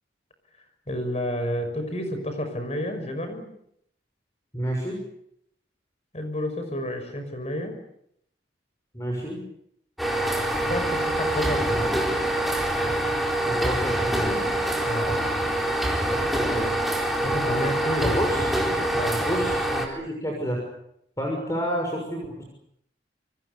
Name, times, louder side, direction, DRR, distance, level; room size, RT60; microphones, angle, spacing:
voice 1, 0.9-3.5 6.1-7.8 10.7-12.0 14.9-15.5 17.2-18.2 18.9-19.2, equal, 35° left, 7 dB, 5.9 m, -30 dB
voice 2, 4.5-5.0 8.9-9.4 13.5-14.5 16.1-16.7 18.0-18.5 19.2-20.6 21.2-22.4, equal, 15° left, 1 dB, 6.2 m, -29 dB
sound 1, 10.0-19.9, right 1 dB, ahead, 4.4 m, -25 dB
28.0 x 25.5 x 6.9 m, 0.73 s
head